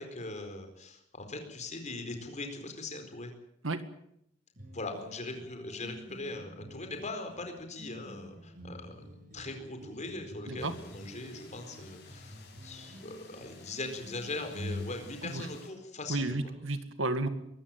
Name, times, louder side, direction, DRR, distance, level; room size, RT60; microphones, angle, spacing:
voice 1, 0.0-3.3 4.7-16.4, left 2 dB, 40° left, 5 dB, 4.4 m, -40 dB
sound 1, 4.6-15.4, left 1 dB, 45° right, 7.5 m, -47 dB
sound 2, 10.6-15.7, left 5 dB, 60° left, 7.2 m, -56 dB
voice 2, 16.1-17.3, right 2 dB, 80° right, 10 dB, 2.0 m, -32 dB
22.5 x 15.0 x 9.0 m, 0.75 s
head